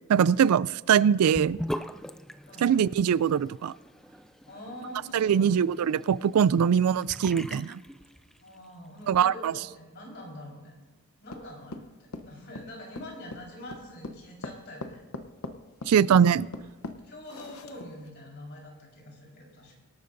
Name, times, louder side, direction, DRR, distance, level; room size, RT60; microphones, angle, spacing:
voice 1, 0.1-1.6 2.6-3.7 5.1-7.8 9.1-9.5 15.9-16.5, right 8 dB, 85° right, 20 dB, 0.3 m, -22 dB
Sink (filling or washing) / Bathtub (filling or washing), 1.3-8.6, equal, ahead, 0.3 m, -41 dB
voice 2, 2.5-2.8 4.5-5.7 8.4-10.7 11.2-15.0 17.0-19.8, left 1 dB, 50° left, -2 dB, 4.4 m, -44 dB
sound 1, 11.3-18.1, left 2 dB, 75° left, 0.8 m, -41 dB
25.0 x 12.0 x 2.6 m, 1.2 s
head